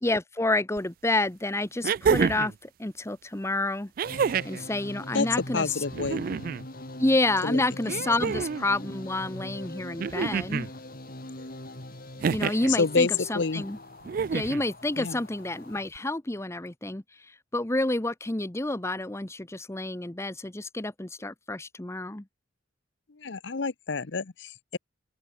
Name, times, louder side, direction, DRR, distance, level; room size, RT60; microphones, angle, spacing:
voice 1, 0.0-3.9 4.4-5.8 7.0-10.7 12.3-13.8 14.3-17.0 17.5-22.2, left 2 dB, 15° left, 0.9 m, -29 dB
sound 1, 0.8-0.9 1.8-2.6 4.0-4.6 5.9-6.6 7.9-8.7 10.0-10.7 12.2-12.7 14.1-14.6 16.0-16.1, right 6 dB, 50° right, 0.3 m, -28 dB
sound 2, 4.1-15.9, left 1 dB, 50° left, 3.8 m, -42 dB
voice 2, 5.5-6.2 7.4-7.6 8.2-8.4 11.4-11.5 12.7-13.1 13.3-13.6 15.0-15.2 23.2-24.8, left 4 dB, 65° left, 0.8 m, -28 dB
open air
head